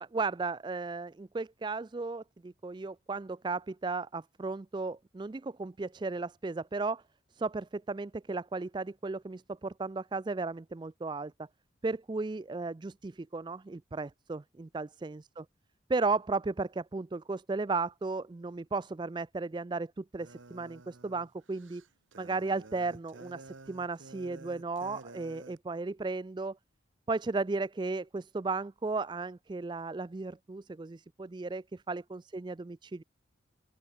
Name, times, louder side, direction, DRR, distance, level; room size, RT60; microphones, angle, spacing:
voice 1, 0.0-7.0 7.3-11.5 11.8-15.4 15.9-21.8 22.2-26.6 27.1-33.0, right 3 dB, 25° right, 0.3 m, -35 dB
sound 1, 20.2-25.6, right 3 dB, 85° right, 1.3 m, -51 dB
open air
head